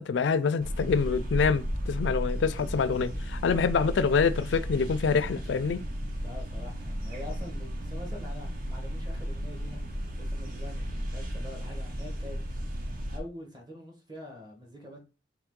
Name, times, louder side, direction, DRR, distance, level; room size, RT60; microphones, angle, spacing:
voice 1, 0.0-5.9, left 5 dB, 75° left, 0.4 m, -26 dB
sound 1, 0.6-13.2, equal, 50° right, 0.7 m, -34 dB
voice 2, 6.2-9.8 10.2-12.4 13.1-15.0, left 1 dB, 25° right, 1.1 m, -45 dB
3.6 x 3.0 x 3.6 m
head